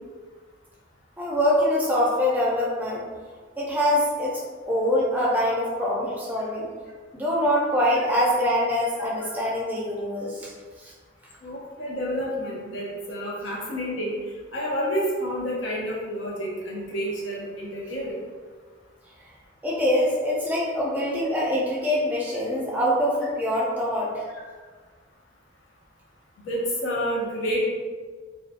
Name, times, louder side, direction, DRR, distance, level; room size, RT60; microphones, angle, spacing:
voice 1, 1.2-3.0 3.6-4.4 4.7-6.7 7.1-10.5 10.8-10.9 19.6-24.2, left 1 dB, 10° right, -5 dB, 0.4 m, -24 dB
voice 2, 11.4-14.1 14.5-18.2 26.4-27.7, equal, 80° left, -4 dB, 0.6 m, -29 dB
2.6 x 2.2 x 2.5 m, 1.5 s
head